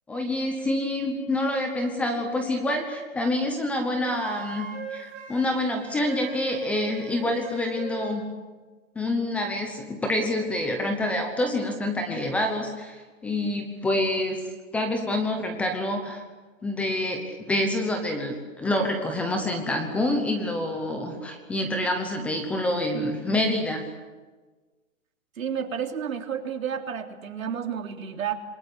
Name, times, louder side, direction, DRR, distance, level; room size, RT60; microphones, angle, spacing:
voice 1, 0.1-8.3 8.9-14.4 14.7-16.2 16.6-23.8, left 1 dB, 5° left, 4 dB, 0.9 m, -27 dB
Wind instrument woodwind instrument, 4.0-8.2, right 9 dB, 25° right, 5.6 m, -39 dB
voice 2, 25.4-28.3, right 8 dB, 80° right, 4 dB, 3.5 m, -31 dB
27.5 x 21.0 x 8.6 m, 1.3 s
hypercardioid pair, 170°, 40 cm